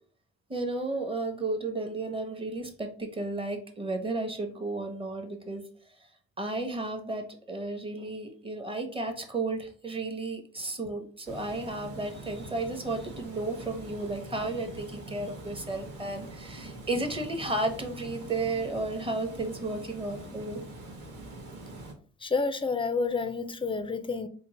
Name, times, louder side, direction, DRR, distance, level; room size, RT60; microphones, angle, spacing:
voice 1, 0.5-5.6 6.4-20.6, right 2 dB, 20° right, 0.9 m, -33 dB
Water, 11.3-21.9, right 2 dB, 85° right, 1.2 m, -44 dB
voice 2, 22.2-24.3, left 4 dB, 15° left, 0.4 m, -29 dB
3.7 x 2.1 x 4.1 m
cardioid pair, 90°, 30 cm